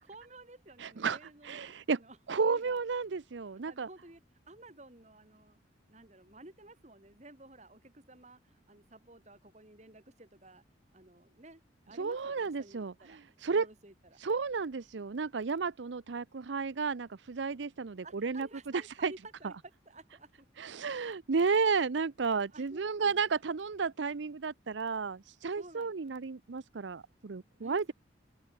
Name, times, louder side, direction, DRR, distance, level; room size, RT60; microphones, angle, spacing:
voice 1, 0.0-2.8 3.7-4.2 4.5-5.6 5.9-10.6 10.9-14.2 18.0-19.6 19.9-20.5 21.6-21.7 22.3-23.4 25.6-26.1 27.6-27.9, right 2 dB, 40° right, 3.8 m, -53 dB
voice 2, 0.8-1.2 1.4-2.0 2.3-3.9 12.0-13.7 14.2-18.5 18.7-19.1 19.4-19.5 20.6-27.9, right 5 dB, 75° right, 0.6 m, -32 dB
head